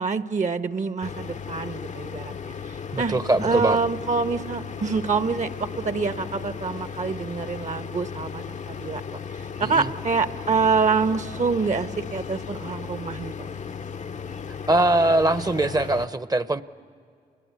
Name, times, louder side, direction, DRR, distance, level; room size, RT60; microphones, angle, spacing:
voice 1, 0.0-2.3 2.7-9.0 9.6-13.3, right 4 dB, 50° right, 11 dB, 1.2 m, -26 dB
sound 1, 1.0-16.1, left 6 dB, 50° left, 0.7 m, -36 dB
voice 2, 2.9-3.8 9.6-9.9 14.7-16.6, right 2 dB, 25° right, 14 dB, 0.9 m, -22 dB
27.5 x 21.5 x 9.6 m, 2.3 s
cardioid pair, 60°, 16 cm